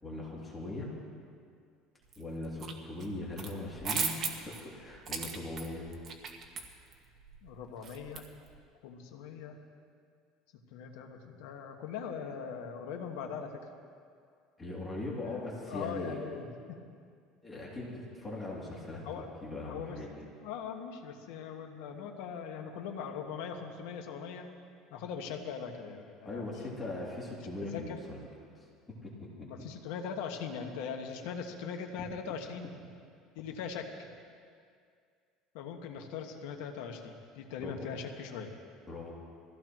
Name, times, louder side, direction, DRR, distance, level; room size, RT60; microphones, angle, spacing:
voice 1, 0.0-0.9 2.2-5.8 14.6-16.2 17.4-19.0 19.4-20.3 26.2-28.2 28.9-29.5 37.6-37.9 38.9-39.1, left 2 dB, 15° left, -5 dB, 2.9 m, -40 dB
sound 1, 2.1-2.7 3.0-8.6, right 5 dB, 40° right, 1.5 m, -38 dB
voice 2, 7.4-8.3 8.8-9.6 10.7-13.6 15.2-16.8 19.0-20.0 20.4-24.5 24.9-26.5 26.7-26.9 27.6-28.0 29.4-32.7 33.3-34.1 35.5-38.5, left 6 dB, 85° left, 3 dB, 1.6 m, -41 dB
22.5 x 16.0 x 3.1 m, 2.2 s
cardioid pair, 135°, 0 cm